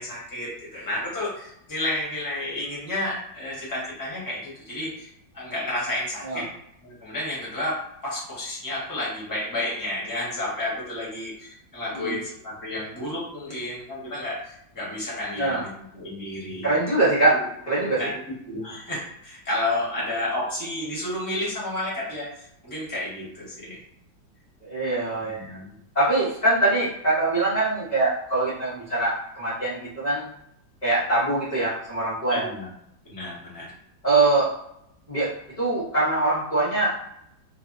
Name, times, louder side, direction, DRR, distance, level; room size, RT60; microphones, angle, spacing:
voice 1, 0.0-6.5 6.8-16.7 17.3-17.4 18.0-18.1 18.5-23.8 25.2-25.8 32.3-32.7 33.0-33.7, left 1 dB, 20° left, -6 dB, 0.5 m, -31 dB
voice 2, 16.6-17.4 17.7-18.0 24.6-25.6 25.9-30.2 30.8-32.5 34.0-34.5 35.1-35.3 35.6-36.9, right 2 dB, 85° left, -9 dB, 0.3 m, -23 dB
3.3 x 2.1 x 2.5 m, 0.77 s
omnidirectional pair, 2.1 m